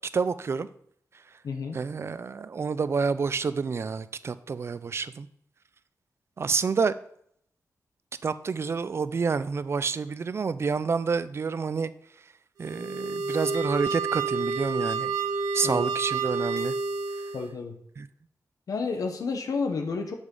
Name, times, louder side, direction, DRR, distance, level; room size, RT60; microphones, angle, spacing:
voice 1, 0.1-0.7 1.7-5.3 6.4-6.9 8.2-11.9 12.6-15.1 15.5-16.7 18.0-18.1, right 5 dB, 45° right, 15 dB, 0.4 m, -28 dB
voice 2, 1.4-1.8 15.6-15.8 17.3-17.8 18.7-20.2, left 4 dB, 75° left, 4 dB, 1.0 m, -30 dB
sound 1, 12.6-17.5, right 4 dB, 80° right, 1.2 m, -29 dB
9.6 x 7.2 x 3.8 m, 0.69 s
wide cardioid pair, 135°, 6 cm